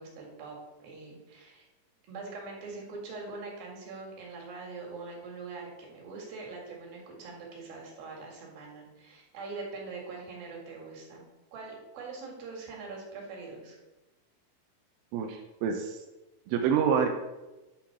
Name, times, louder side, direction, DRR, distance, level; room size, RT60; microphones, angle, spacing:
voice 1, 0.0-1.7 2.1-11.3 11.5-13.8, right 3 dB, 75° right, -1 dB, 3.6 m, -43 dB
voice 2, 15.1-16.0 16.5-17.1, right 7 dB, 90° right, 3 dB, 2.5 m, -27 dB
10.0 x 3.8 x 5.8 m, 1.1 s
omnidirectional pair, 4.2 m